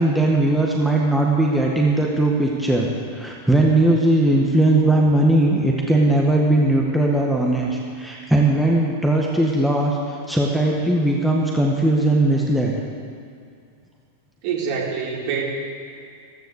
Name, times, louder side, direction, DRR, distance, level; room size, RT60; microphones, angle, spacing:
voice 1, 0.0-12.7, right 1 dB, 5° right, -2 dB, 1.9 m, -19 dB
voice 2, 14.4-15.5, right 6 dB, 45° right, -2 dB, 3.6 m, -25 dB
15.5 x 14.0 x 6.6 m, 2.3 s
figure-of-eight pair, 90°, 0 cm